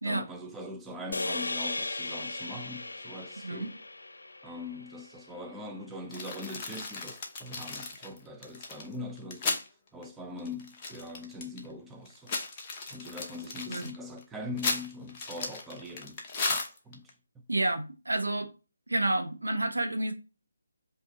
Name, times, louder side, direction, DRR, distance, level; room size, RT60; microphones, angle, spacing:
voice 1, 0.0-3.8 4.4-9.7 9.9-12.5 12.9-16.2 16.5-17.4, left 2 dB, 5° right, 0.4 m, -42 dB
sound 1, 1.1-5.5, left 2 dB, 70° left, 0.4 m, -37 dB
sound 2, 6.1-9.7 10.0-10.1 10.4-11.7 12.1-17.1, left 3 dB, 20° left, 0.8 m, -35 dB
voice 2, 17.5-18.5 18.9-20.1, right 2 dB, 80° right, 1.0 m, -29 dB
5.6 x 2.6 x 2.6 m
figure-of-eight pair, 150°, 0 cm